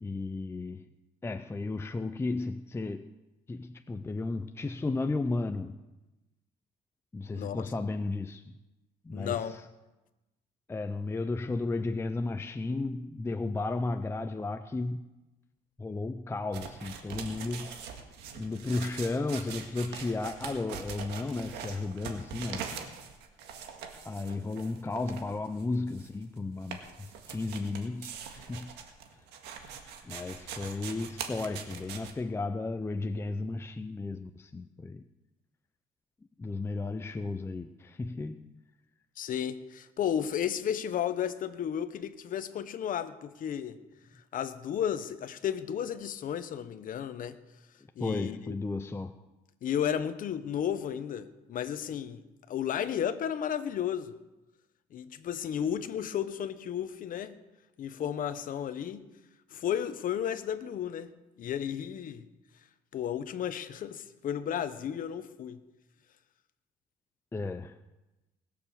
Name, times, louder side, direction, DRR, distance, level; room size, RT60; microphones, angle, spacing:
voice 1, 0.0-0.9 1.2-3.2 3.5-5.8 7.1-8.4 9.0-9.6 10.7-15.0 15.8-17.8 18.3-22.8 24.0-28.7 30.0-35.0 36.4-38.5 48.0-49.2 67.3-67.8, left 3 dB, 15° left, 8 dB, 0.5 m, -34 dB
voice 2, 7.3-7.7 9.1-9.6 39.2-43.8 44.3-47.3 48.0-48.6 49.6-52.2 52.5-54.1 54.9-57.4 57.8-59.1 59.5-61.1 61.4-62.3 62.9-65.6, left 9 dB, 55° left, 12 dB, 1.0 m, -33 dB
sound 1, 16.5-32.1, right 7 dB, 85° right, 1.8 m, -43 dB
20.0 x 6.9 x 7.0 m, 1.0 s
cardioid pair, 110°, 17 cm